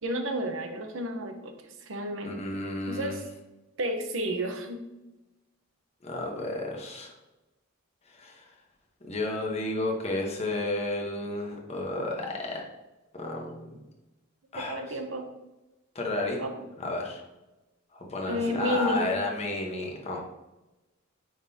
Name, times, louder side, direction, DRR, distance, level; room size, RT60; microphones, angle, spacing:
voice 1, 0.0-1.5 1.9-2.4 2.9-3.2 3.8-4.8 14.6-15.3 16.4-16.7 18.3-19.1, equal, 70° right, 5 dB, 0.9 m, -31 dB
voice 2, 2.2-3.2 6.0-7.1 8.1-8.4 9.1-12.6 13.2-13.8 14.5-15.0 15.9-16.4 16.8-17.2 17.9-20.2, left 2 dB, 30° left, 0 dB, 1.1 m, -32 dB
9.1 x 3.9 x 2.8 m, 1.0 s
head